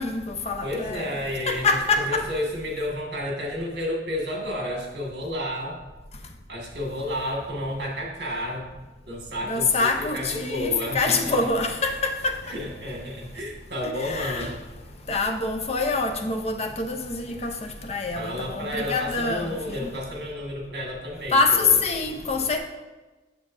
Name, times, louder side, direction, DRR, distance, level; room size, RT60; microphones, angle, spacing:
voice 1, 0.0-1.1 1.5-2.2 9.4-12.3 14.0-14.5 15.1-17.5 17.8-19.9 21.3-22.6, left 3 dB, 35° left, 4 dB, 0.7 m, -25 dB
voice 2, 0.6-5.8 6.5-8.7 9.1-11.4 12.5-14.6 18.1-21.8, left 1 dB, 65° right, -1 dB, 1.8 m, -31 dB
7.2 x 7.0 x 2.6 m, 1.2 s
head